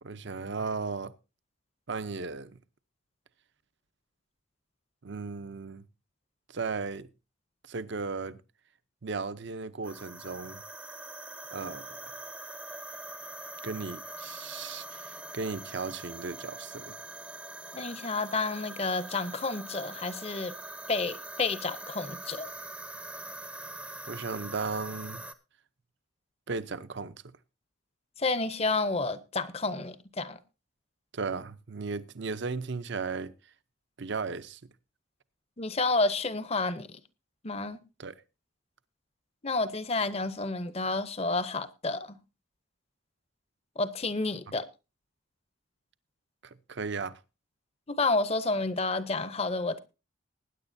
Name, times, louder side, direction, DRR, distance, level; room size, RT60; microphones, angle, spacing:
voice 1, 0.0-1.1 1.9-2.6 5.0-5.8 6.5-7.1 7.7-8.4 9.0-10.6 11.5-11.9 13.6-17.0 24.1-25.2 26.5-27.1 31.1-33.3 34.0-34.6 38.0-38.2 46.4-47.1, right 4 dB, 55° right, 0.6 m, -35 dB
sound 1, 9.8-25.3, right 2 dB, 5° right, 0.6 m, -43 dB
voice 2, 17.7-20.5 20.9-22.5 28.2-30.4 35.6-37.0 37.4-37.8 39.4-42.2 43.8-44.7 47.9-49.8, left 3 dB, 30° left, 0.7 m, -30 dB
20.0 x 9.7 x 2.6 m
head